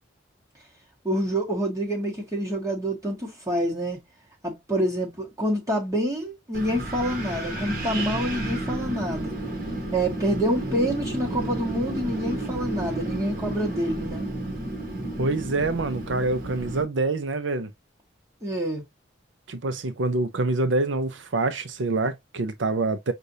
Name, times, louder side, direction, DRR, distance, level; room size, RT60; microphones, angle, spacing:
voice 1, 1.0-4.0 4.4-9.3 9.9-14.3 18.4-18.8, equal, 15° right, 1.3 m, -27 dB
Wind, 6.5-16.8, right 1 dB, 45° right, 1.2 m, -32 dB
voice 2, 15.2-17.7 19.5-23.1, right 2 dB, 70° right, 0.6 m, -26 dB
6.5 x 2.6 x 2.7 m
head